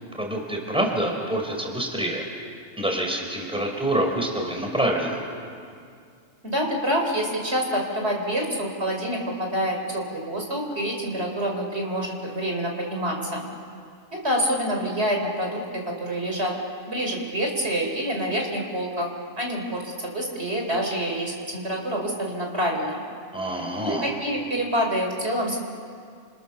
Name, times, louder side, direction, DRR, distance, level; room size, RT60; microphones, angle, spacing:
voice 1, 0.1-2.3 2.8-5.2 23.3-24.1, right 1 dB, 5° right, 1 dB, 4.0 m, -26 dB
voice 2, 6.4-13.5 14.1-16.5 16.9-19.1 19.4-23.0 23.8-25.6, equal, 50° right, 1 dB, 4.1 m, -27 dB
29.0 x 28.0 x 7.0 m, 2.3 s
omnidirectional pair, 1.4 m